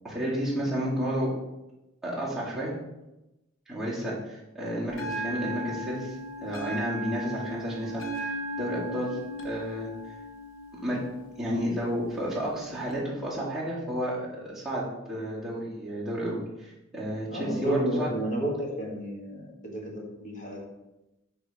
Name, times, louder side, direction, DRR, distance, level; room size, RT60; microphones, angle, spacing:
voice 1, 0.0-1.3 2.0-2.7 3.7-9.2 9.4-9.9 10.8-11.0 11.4-18.1, equal, ahead, -9 dB, 2.2 m, -31 dB
Bell, 4.9-12.9, right 1 dB, 80° left, 1.1 m, -37 dB
voice 2, 17.3-20.6, equal, 40° left, -2 dB, 1.7 m, -31 dB
9.4 x 3.6 x 3.5 m, 0.95 s
head